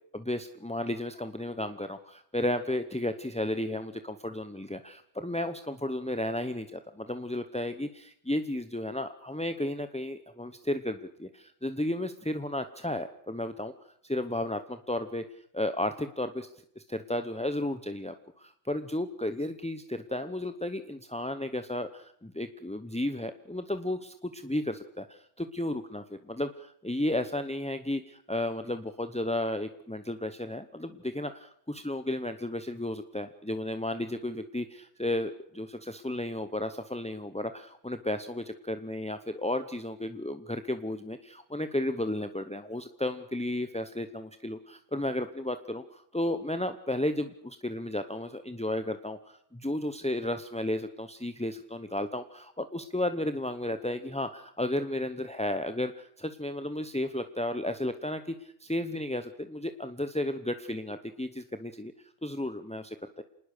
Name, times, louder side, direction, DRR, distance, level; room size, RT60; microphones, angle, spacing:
voice 1, 0.1-13.7 14.0-15.2 15.5-16.5 16.8-61.9 62.2-63.2, left 1 dB, 5° left, 9 dB, 0.6 m, -33 dB
27.0 x 19.5 x 6.7 m, 0.66 s
omnidirectional pair, 1.5 m